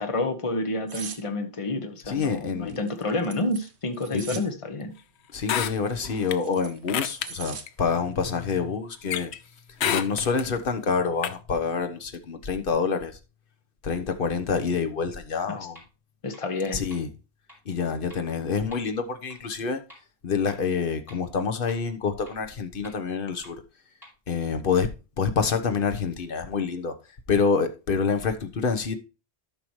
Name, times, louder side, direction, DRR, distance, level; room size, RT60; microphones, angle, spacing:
voice 1, 0.0-4.9 15.5-15.7 16.2-16.8, left 2 dB, 30° left, 1.1 m, -29 dB
sound 1, 0.9-1.2 2.7-4.5 5.9-7.7 8.1-8.3, right 6 dB, 85° right, 1.3 m, -40 dB
voice 2, 2.1-2.8 4.1-4.4 5.3-9.3 9.9-13.2 13.8-15.8 16.7-17.1 17.6-19.8 20.2-23.6 24.3-24.9 25.2-26.9 27.3-28.9, left 5 dB, 55° left, 1.2 m, -27 dB
sound 2, 5.4-6.4 6.9-7.3 7.7-7.8 9.1-9.4 9.8-10.5 11.2-11.3, left 9 dB, 85° left, 0.9 m, -27 dB
sound 3, 15.7-15.8 16.3-16.4 16.9-17.0 17.5-17.6 18.1-18.2 18.7-18.8 19.3-19.4 19.9-20.0 20.5-20.6 21.1-21.2 21.7-21.8 22.3-22.4 22.8-22.9 23.4-23.5 24.0-24.1, equal, ahead, 4.8 m, -48 dB
12.5 x 5.9 x 3.1 m
omnidirectional pair, 1.1 m